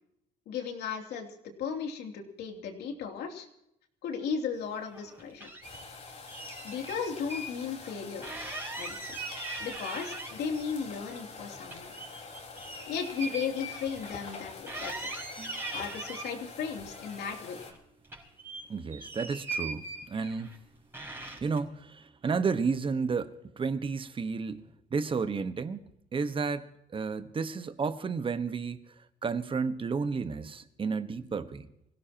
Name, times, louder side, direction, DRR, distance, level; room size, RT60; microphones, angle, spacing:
voice 1, 0.5-1.3 1.6-3.5 4.0-5.5 6.6-8.3 8.7-9.2 9.6-11.9 12.9-15.1 15.7-17.6, left 6 dB, 75° left, 3.1 m, -35 dB
sound 1, 4.8-5.8 6.3-7.5 7.8-7.9 8.2-10.6 11.0-14.4 14.7-16.3 16.9-17.8 18.0-20.6 20.9-21.6, right 2 dB, 15° right, 5.5 m, -40 dB
sound 2, 5.6-17.7, left 4 dB, 40° left, 3.8 m, -46 dB
voice 2, 18.7-20.6 21.4-24.6 24.9-25.8 26.1-28.8 29.2-31.7, right 5 dB, 30° right, 1.3 m, -32 dB
25.5 x 17.0 x 3.0 m
cardioid pair, 110°, 17 cm